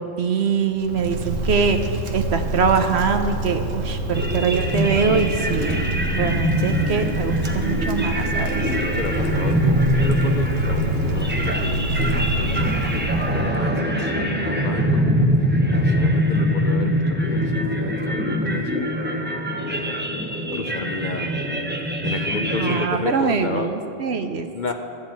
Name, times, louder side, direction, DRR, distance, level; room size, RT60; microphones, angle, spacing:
voice 1, 0.0-1.8 2.1-8.7 22.6-24.5, right 5 dB, 60° right, 7 dB, 1.0 m, -23 dB
Wind, 0.7-13.6, right 2 dB, 80° right, 1.4 m, -27 dB
sound 1, 4.1-22.9, equal, 10° right, 0.7 m, -23 dB
voice 2, 8.7-15.1 15.7-18.9 19.6-20.1 20.5-21.3 22.0-23.7 24.5-24.7, left 3 dB, 45° left, 5 dB, 0.7 m, -32 dB
13.5 x 6.2 x 8.7 m, 2.7 s
omnidirectional pair, 1.3 m